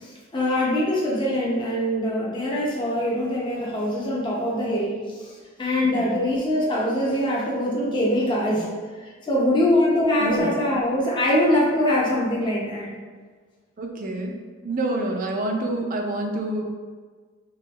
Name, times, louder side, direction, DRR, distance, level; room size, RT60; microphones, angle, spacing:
voice 1, 0.0-8.7 9.0-12.9, left 1 dB, 25° left, -5 dB, 0.6 m, -23 dB
voice 2, 10.2-10.5 13.8-14.4 14.6-16.6, right 1 dB, 40° right, 2 dB, 0.4 m, -27 dB
4.1 x 3.0 x 2.3 m, 1.5 s
head